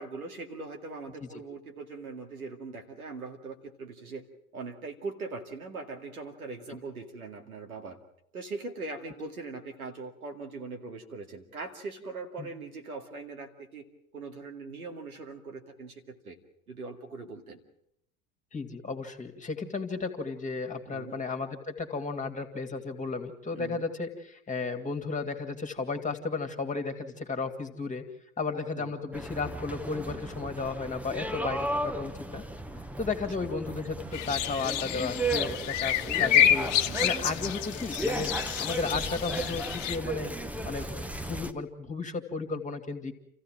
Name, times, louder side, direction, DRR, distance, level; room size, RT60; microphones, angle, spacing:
voice 1, 0.0-4.2 4.5-8.0 8.3-13.8 14.1-16.4 16.7-17.6 20.9-21.2 23.5-23.8 28.8-28.9 36.7-37.0, right 3 dB, 80° right, 3 dB, 2.3 m, -41 dB
voice 2, 18.5-28.0 28.4-32.4 33.0-38.3 38.6-40.3 40.6-43.1, left 4 dB, 15° left, 6 dB, 2.4 m, -34 dB
sound 1, 29.1-41.5, right 2 dB, 5° right, 1.0 m, -35 dB
sound 2, 34.1-40.0, left 10 dB, 60° left, 1.3 m, -28 dB
27.5 x 15.0 x 7.6 m, 0.77 s
figure-of-eight pair, 75°, 43 cm